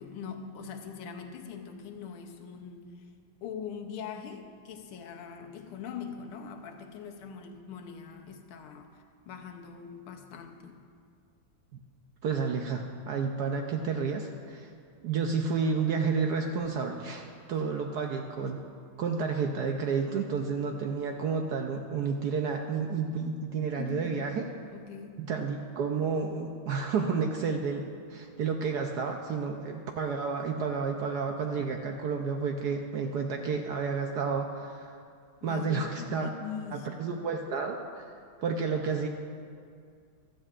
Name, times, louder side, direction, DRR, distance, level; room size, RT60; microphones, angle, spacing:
voice 1, 0.0-2.9 3.4-10.8 23.8-24.4 24.7-25.3 35.4-37.0, left 7 dB, 90° left, 4 dB, 1.7 m, -42 dB
voice 2, 12.2-14.7 15.0-18.6 19.0-24.5 25.2-27.8 28.1-35.0 35.4-36.3 36.7-38.0 38.4-39.1, right 5 dB, 75° right, 3 dB, 0.9 m, -31 dB
15.5 x 12.5 x 2.5 m, 2.3 s
omnidirectional pair, 2.3 m